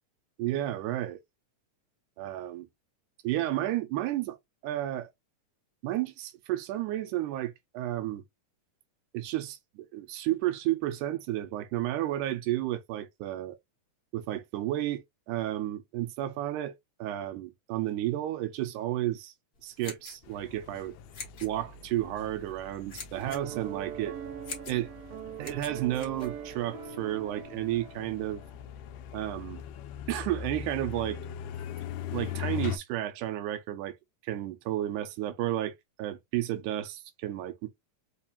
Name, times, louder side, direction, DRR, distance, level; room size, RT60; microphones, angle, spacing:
voice 1, 0.4-1.2 2.2-2.7 3.2-4.4 4.6-5.1 5.8-8.2 9.1-13.6 14.1-19.3 19.6-20.9 21.4-24.2 24.7-24.9 25.4-28.4 29.1-29.6 30.1-31.2 32.1-34.0 34.2-37.7, right 14 dB, 90° right, 2.1 m, -32 dB
sound 1, 19.6-26.9, left 5 dB, 60° left, 0.9 m, -47 dB
sound 2, 20.2-32.8, left 10 dB, 80° left, 1.6 m, -41 dB
Piano, 23.3-28.6, right 8 dB, 70° right, 1.6 m, -42 dB
4.9 x 2.3 x 2.7 m
omnidirectional pair, 3.6 m